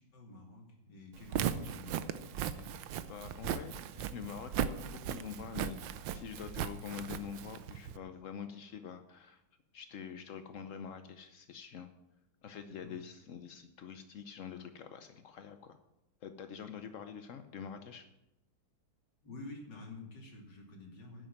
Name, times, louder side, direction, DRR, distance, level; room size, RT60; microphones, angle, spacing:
voice 1, 0.0-2.7 12.7-12.9 19.2-21.3, left 2 dB, 55° left, 0 dB, 3.2 m, -50 dB
Walk footsteps, 1.2-8.0, right 9 dB, 70° right, 1.3 m, -38 dB
voice 2, 3.1-5.8 6.1-9.4 9.7-11.9 12.4-15.8 16.2-18.1, left 7 dB, 75° left, 8 dB, 0.7 m, -45 dB
10.5 x 7.8 x 8.8 m, 0.93 s
omnidirectional pair, 2.3 m